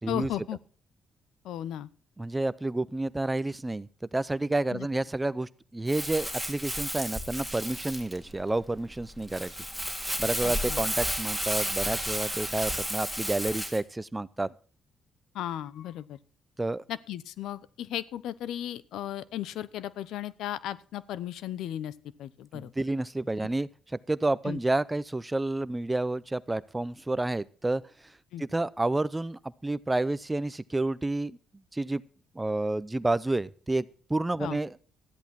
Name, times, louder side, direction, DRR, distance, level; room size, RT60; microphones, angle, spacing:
voice 1, 0.1-0.6 1.4-1.9 4.7-4.9 10.4-10.8 15.3-16.2 16.9-21.9 22.2-22.7 24.4-24.6 28.3-28.4 34.4-34.6, left 12 dB, 80° left, 18 dB, 0.8 m, -35 dB
voice 2, 2.2-9.6 10.2-14.5 16.6-16.8 22.5-23.7 24.1-27.8 28.4-31.4 31.7-32.0 32.3-34.8, right 2 dB, 15° right, 18 dB, 0.6 m, -30 dB
Crumpling crinkling, 5.9-13.8, equal, 5° left, 3.2 m, -32 dB
13.5 x 10.5 x 4.4 m, 0.41 s
cardioid pair, 90°, 0 cm